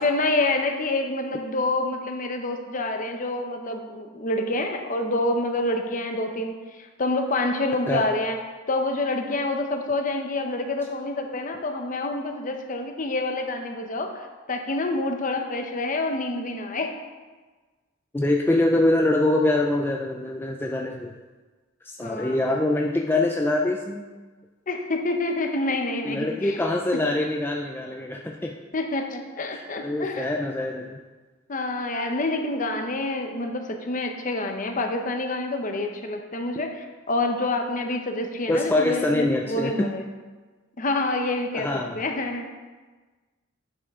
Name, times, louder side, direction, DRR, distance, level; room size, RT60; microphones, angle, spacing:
voice 1, 0.0-8.4 8.7-16.9 22.0-22.6 24.7-26.6 28.7-30.3 31.5-40.0 40.8-42.5, left 2 dB, 40° left, 4 dB, 0.8 m, -27 dB
voice 2, 18.1-21.2 21.8-24.0 26.0-28.6 29.8-31.0 38.5-39.9 41.5-42.0, left 2 dB, 10° left, 1 dB, 0.3 m, -24 dB
9.5 x 5.8 x 3.6 m, 1.3 s
head